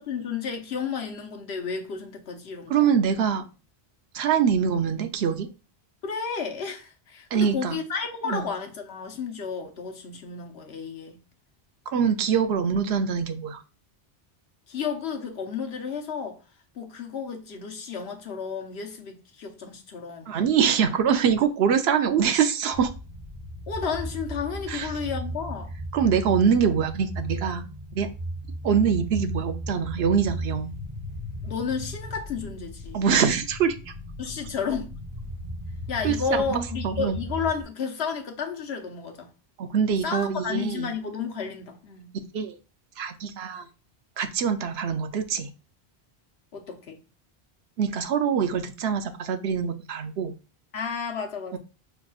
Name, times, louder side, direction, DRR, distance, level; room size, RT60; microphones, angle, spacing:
voice 1, 0.0-2.9 6.0-11.2 14.7-16.4 16.7-20.3 23.7-25.7 31.4-33.0 34.2-34.9 35.9-39.3 40.0-42.2 46.5-47.0 50.7-51.6, left 6 dB, 85° left, 1.1 m, -32 dB
voice 2, 2.7-3.4 4.1-5.5 7.3-7.8 8.2-8.5 11.9-13.6 20.3-22.9 24.7-24.9 25.9-27.7 27.9-28.1 28.6-30.7 32.9-33.9 36.0-37.2 39.6-40.9 42.3-42.6 43.0-43.7 44.2-45.5 47.8-50.3 51.5-51.6, right 7 dB, 80° right, 0.9 m, -24 dB
sound 1, 22.7-37.6, equal, 55° right, 1.2 m, -36 dB
6.0 x 3.4 x 2.3 m
omnidirectional pair, 1.1 m